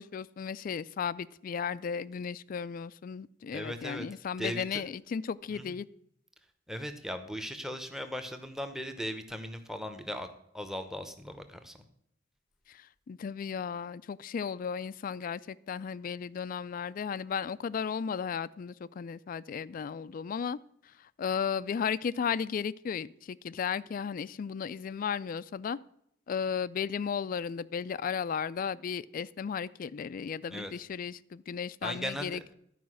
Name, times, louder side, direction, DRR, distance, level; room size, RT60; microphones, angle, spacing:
voice 1, 0.0-5.9 13.1-20.6 21.2-25.8 26.3-32.5, left 7 dB, 45° left, 0.3 m, -35 dB
voice 2, 3.5-4.0 4.4-4.8 5.5-5.8 6.7-10.3 10.5-11.8 30.5-30.7 31.8-32.4, equal, ahead, 0.8 m, -38 dB
11.5 x 5.0 x 6.2 m
head